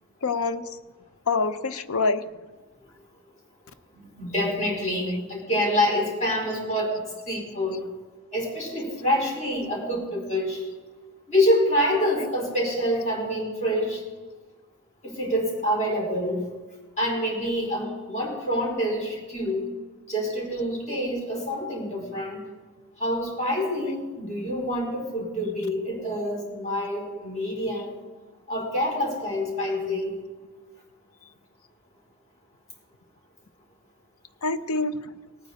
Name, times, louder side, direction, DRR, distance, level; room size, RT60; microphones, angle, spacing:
voice 1, 0.2-0.7 1.3-2.2 34.4-35.0, left 4 dB, 85° left, 13 dB, 0.7 m, -25 dB
voice 2, 3.9-7.8 8.3-10.7 11.3-14.0 15.0-16.4 17.0-19.6 20.1-22.4 23.0-27.9 28.5-30.1, equal, 35° left, -3 dB, 4.4 m, -26 dB
19.0 x 9.3 x 4.1 m, 1.3 s
head